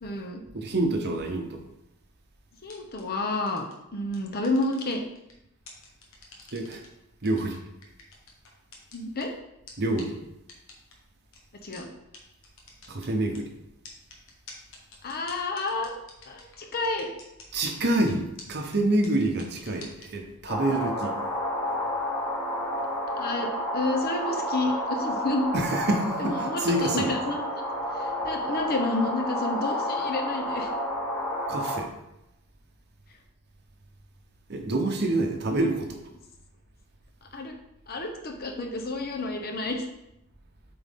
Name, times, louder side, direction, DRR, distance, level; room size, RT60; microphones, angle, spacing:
voice 1, 0.0-0.4 2.6-3.6 3.9-5.0 8.9-9.3 11.6-11.9 15.0-15.9 16.3-17.1 23.2-23.5 23.7-25.5 26.2-27.6 27.9-30.7 37.3-37.5 37.9-39.9, left 2 dB, 45° left, 2 dB, 0.9 m, -30 dB
voice 2, 0.5-1.6 6.5-6.8 7.2-7.6 9.8-10.2 12.9-13.5 17.5-21.1 25.5-27.1 31.5-31.9 34.5-36.0, right 2 dB, 50° right, 3 dB, 0.9 m, -27 dB
sound 1, 2.6-3.0 3.5-3.7 4.1-5.3 5.7-6.9 7.2-9.2 9.7-9.8 10.0-10.1 10.5-10.9 11.3-11.4 11.7-11.8 12.1-12.2 12.4-13.4 13.8-17.5 17.7-18.1 18.4-18.5 18.7-18.8 19.0-20.1, left 4 dB, 60° left, 1.3 m, -47 dB
sound 2, 20.5-31.8, equal, 80° left, 1.6 m, -30 dB
7.9 x 3.9 x 3.6 m, 0.87 s
head